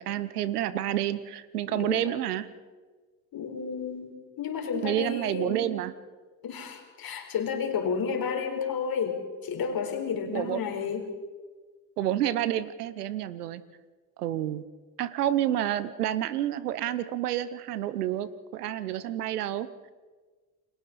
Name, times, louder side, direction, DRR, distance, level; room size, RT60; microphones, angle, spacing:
voice 1, 0.0-2.5 4.8-5.9 10.3-10.6 12.0-13.6 14.2-14.6 15.0-19.7, right 12 dB, 90° right, 16 dB, 1.0 m, -29 dB
voice 2, 1.7-2.2 3.3-5.6 6.4-11.0, left 6 dB, 50° left, 4 dB, 4.2 m, -32 dB
29.5 x 21.0 x 4.2 m, 1.4 s
hypercardioid pair, 60°, 45 cm